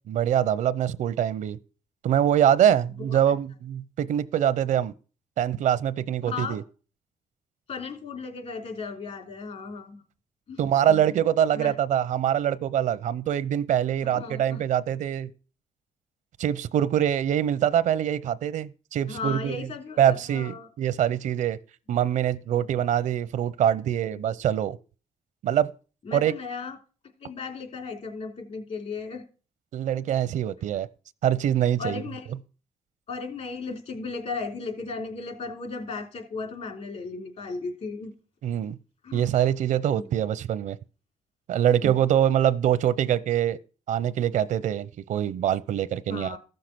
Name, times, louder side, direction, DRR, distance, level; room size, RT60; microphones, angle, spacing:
voice 1, 0.1-1.6 2.0-4.9 5.4-6.6 10.6-15.3 16.4-19.6 20.0-21.6 21.9-24.8 25.4-25.7 26.1-26.3 29.7-30.9 31.2-32.0 38.4-38.8 39.1-40.8 41.5-43.6 43.9-46.4, right 10 dB, 80° right, 0.7 m, -24 dB
voice 2, 6.2-6.6 7.7-10.0 10.5-11.0 11.5-11.7 14.0-14.6 19.1-20.7 22.6-22.7 24.1-24.2 26.0-26.8 27.2-29.2 31.8-32.3 33.1-38.1 39.0-39.4 40.0-40.1 41.8-42.0 46.1-46.4, left 4 dB, 60° left, 3.4 m, -36 dB
15.0 x 6.6 x 6.0 m
cardioid pair, 110°, 13 cm